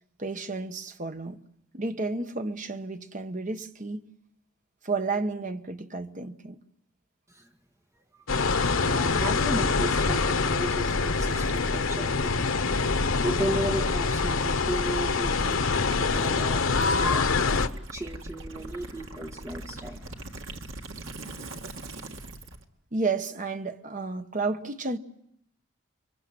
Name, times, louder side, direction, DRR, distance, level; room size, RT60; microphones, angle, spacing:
voice 1, 0.2-1.4 1.7-4.1 4.8-6.6 22.9-25.0, right 3 dB, 40° right, 1.2 m, -31 dB
sound 1, 8.3-17.7, left 4 dB, 85° left, 1.0 m, -25 dB
voice 2, 8.7-12.5 13.2-15.7 16.0-20.5, right 1 dB, 15° right, 1.9 m, -35 dB
Gurgling / Liquid, 10.0-22.6, right 1 dB, 80° right, 2.0 m, -42 dB
29.5 x 23.5 x 7.7 m
head